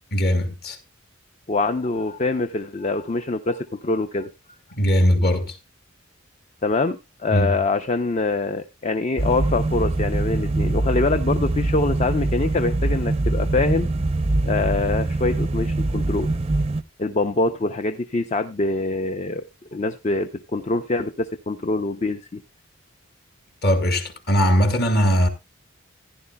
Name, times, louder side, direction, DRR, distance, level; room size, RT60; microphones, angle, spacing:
voice 1, 0.1-0.8 4.7-5.6 7.3-7.6 23.6-25.3, equal, 50° left, 2.1 m, -20 dB
voice 2, 1.5-4.3 6.6-13.9 14.4-16.3 17.0-19.4 19.7-22.4, left 3 dB, 35° left, 0.5 m, -24 dB
sound 1, 9.2-16.8, right 2 dB, 30° right, 0.5 m, -23 dB
15.5 x 10.5 x 2.2 m
head